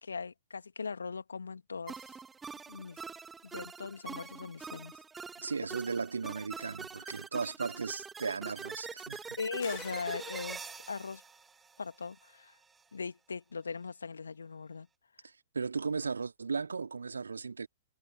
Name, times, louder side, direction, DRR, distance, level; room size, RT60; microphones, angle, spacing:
voice 1, 0.0-2.1 2.7-3.0 3.4-5.0 9.4-11.2 11.8-12.5 12.9-14.9, left 5 dB, 70° left, 2.0 m, -39 dB
sound 1, 1.9-12.3, right 5 dB, 10° right, 1.8 m, -45 dB
voice 2, 5.4-9.4 15.5-17.7, right 5 dB, 70° right, 2.2 m, -36 dB
sound 2, 9.6-11.0, left 22 dB, 40° left, 3.2 m, -51 dB
figure-of-eight pair, 110°, 0 cm